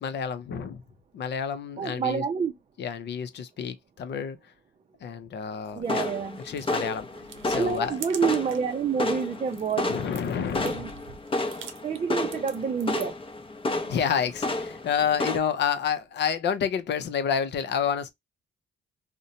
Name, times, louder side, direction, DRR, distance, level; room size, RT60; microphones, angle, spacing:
voice 1, 0.0-0.8 1.1-2.2 2.8-4.4 5.0-6.1 6.4-7.1 7.4-8.0 9.9-10.8 13.8-18.1, left 7 dB, 60° left, 0.6 m, -29 dB
voice 2, 1.8-2.5 5.7-6.4 7.5-9.9 10.6-10.9 11.8-13.1, right 6 dB, 30° right, 0.5 m, -28 dB
sound 1, 5.6-8.7 9.1-13.3, right 7 dB, 80° right, 0.7 m, -46 dB
sound 2, 5.9-15.4, left 2 dB, 25° left, 0.7 m, -32 dB
2.7 x 2.1 x 2.6 m
cardioid pair, 90°, 20 cm